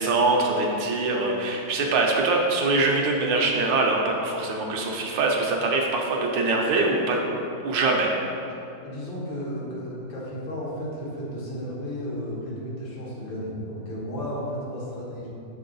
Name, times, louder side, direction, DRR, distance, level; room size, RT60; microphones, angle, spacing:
voice 1, 0.0-7.2 7.6-8.1, right 3 dB, 75° right, 0 dB, 1.4 m, -23 dB
voice 2, 8.8-15.3, equal, 80° left, -6 dB, 2.1 m, -33 dB
6.6 x 3.8 x 3.9 m, 2.7 s
omnidirectional pair, 2.1 m